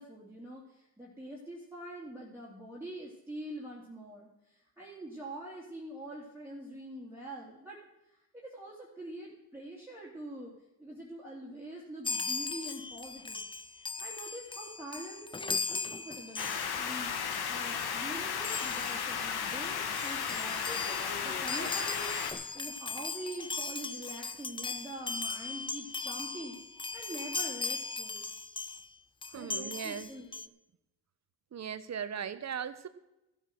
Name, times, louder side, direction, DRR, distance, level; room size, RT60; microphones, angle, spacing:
voice 1, 0.0-7.8 8.3-10.5 10.8-13.4 13.8-20.8 21.2-22.2 22.5-26.6 26.9-28.2 29.3-30.5, right 1 dB, 5° right, -5 dB, 2.5 m, -45 dB
Chime, 12.0-17.0 17.3-17.5 18.4-19.0 19.6-19.7 19.9-28.9 29.2-30.5, left 4 dB, 15° left, 0.4 m, -38 dB
sound 1, 16.4-22.3, left 7 dB, 70° left, 1.5 m, -34 dB
sound 2, 20.6-21.9 22.9-23.0 23.7-23.8 24.3-24.4 24.9-25.0 25.6-25.7 26.0-26.1, left 2 dB, 30° left, 2.2 m, -46 dB
voice 2, 29.3-30.2 31.5-32.9, right 8 dB, 40° right, 13 dB, 0.9 m, -38 dB
14.5 x 8.3 x 6.4 m, 0.92 s
cardioid pair, 110°, 40 cm